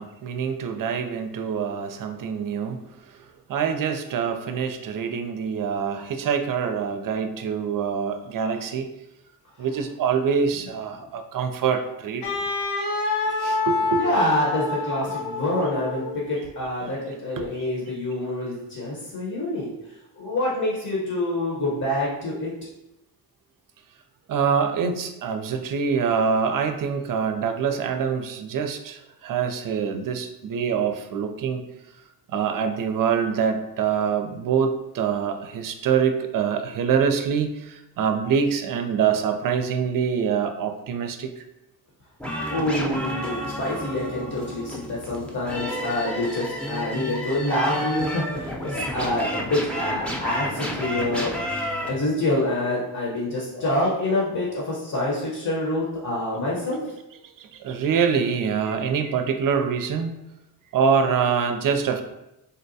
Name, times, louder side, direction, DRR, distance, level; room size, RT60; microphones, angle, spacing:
voice 1, 0.0-2.8 3.5-8.9 9.6-12.2 13.4-14.0 16.8-16.9 17.4-17.5 24.3-31.6 32.3-41.3 57.4-60.1 60.7-62.0, right 6 dB, 55° right, 7 dB, 0.4 m, -25 dB
Wind instrument woodwind instrument, 12.2-16.3, left 3 dB, 90° left, 0.8 m, -27 dB
voice 2, 14.0-19.7 20.1-22.5 42.5-51.3 51.8-56.8, left 1 dB, 45° left, -4 dB, 1.0 m, -26 dB
sound 1, 42.2-51.9, equal, 5° left, 0.6 m, -31 dB
3.9 x 2.2 x 2.6 m, 0.90 s
cardioid pair, 85°, 42 cm